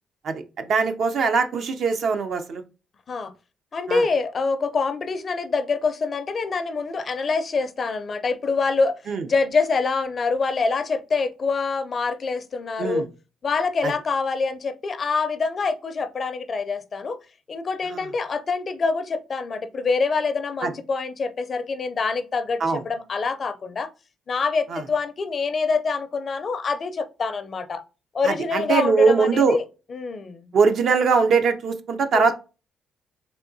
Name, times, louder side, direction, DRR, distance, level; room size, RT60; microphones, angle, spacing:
voice 1, 0.2-2.6 3.9-4.0 9.1-9.3 12.8-13.1 13.8-13.9 17.9-18.0 20.6-20.7 22.6-22.8 24.7-24.8 28.2-29.6 30.5-32.4, right 5 dB, 60° right, 0.5 m, -21 dB
voice 2, 3.7-9.0 9.3-13.0 13.4-17.2 17.5-23.9 24.3-27.8 28.1-29.6 29.9-30.5 32.1-32.4, left 4 dB, 45° left, 0.4 m, -25 dB
3.5 x 2.8 x 2.6 m
cardioid pair, 90°, 0 cm